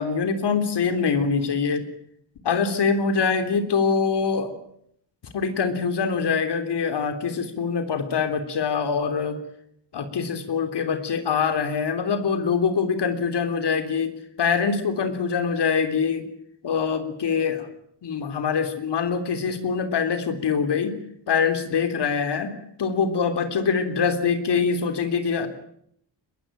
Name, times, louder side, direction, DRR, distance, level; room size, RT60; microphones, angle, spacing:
voice 1, 0.0-1.8 2.4-4.6 5.3-9.4 9.9-14.1 14.4-16.3 16.6-17.7 18.0-21.0 21.3-22.5 22.8-25.5, left 5 dB, 65° left, 9 dB, 3.5 m, -24 dB
22.0 x 21.0 x 9.1 m, 0.68 s
wide cardioid pair, 120°, 44 cm